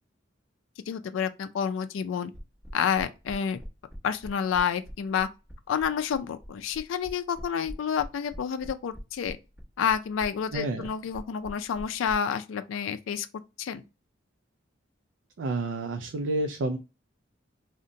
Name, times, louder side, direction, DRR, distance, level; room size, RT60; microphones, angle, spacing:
voice 1, 0.9-2.3 2.7-3.6 4.0-5.3 5.7-9.4 9.8-13.3 13.6-13.8, left 7 dB, 80° left, 0.3 m, -29 dB
sound 1, 2.3-12.1, equal, 5° right, 1.0 m, -43 dB
voice 2, 10.5-10.9 15.4-16.8, right 2 dB, 70° right, 0.4 m, -29 dB
2.6 x 2.1 x 3.8 m
head